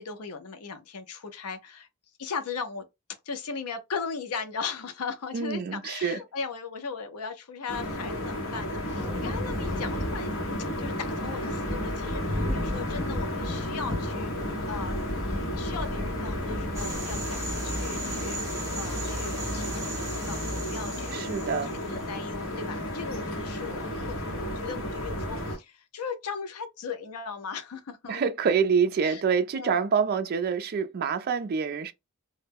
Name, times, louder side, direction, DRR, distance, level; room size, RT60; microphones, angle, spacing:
voice 1, 0.0-1.9 2.2-2.8 3.3-10.3 10.8-14.3 14.6-15.1 15.5-21.3 21.6-28.3 29.0-29.2 29.5-29.9, left 5 dB, 80° left, 0.5 m, -38 dB
voice 2, 5.3-6.2 21.1-21.7 28.1-31.9, right 6 dB, 45° right, 0.3 m, -26 dB
sound 1, 7.7-25.6, left 1 dB, 60° left, 0.9 m, -33 dB
Thunder, 9.0-18.6, left 1 dB, 15° left, 0.5 m, -35 dB
sound 2, 16.7-22.0, right 1 dB, 15° right, 0.8 m, -36 dB
2.2 x 2.0 x 3.3 m
head